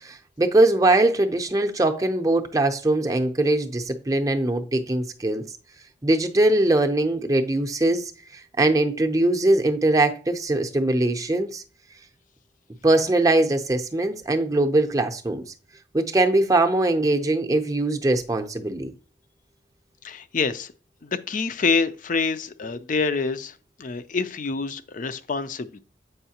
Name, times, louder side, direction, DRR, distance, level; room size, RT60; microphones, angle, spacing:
voice 1, 0.0-5.4 6.0-8.1 8.6-11.6 12.8-15.4 15.9-18.9, right 2 dB, 20° right, 0.6 m, -21 dB
voice 2, 20.0-20.7 21.0-23.5 23.8-25.8, left 4 dB, 45° left, 0.5 m, -26 dB
7.9 x 5.5 x 2.8 m
head